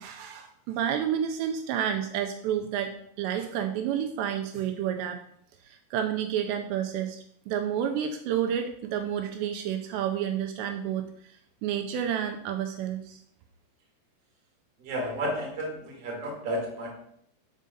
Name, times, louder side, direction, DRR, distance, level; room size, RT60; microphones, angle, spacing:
voice 1, 0.0-5.2 5.7-11.1 11.6-13.2, right 9 dB, 80° right, 5 dB, 2.8 m, -30 dB
voice 2, 14.8-16.9, equal, 40° right, 0 dB, 2.5 m, -32 dB
6.5 x 5.3 x 6.5 m, 0.68 s
omnidirectional pair, 5.1 m